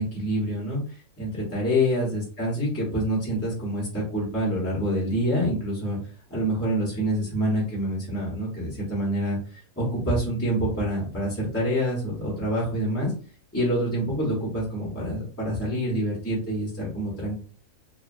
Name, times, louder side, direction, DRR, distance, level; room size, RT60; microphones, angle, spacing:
voice 1, 0.0-6.0 6.3-9.4 9.8-13.1 13.5-17.3, equal, 10° left, -5 dB, 1.1 m, -26 dB
2.7 x 2.6 x 2.5 m, 0.38 s
omnidirectional pair, 1.5 m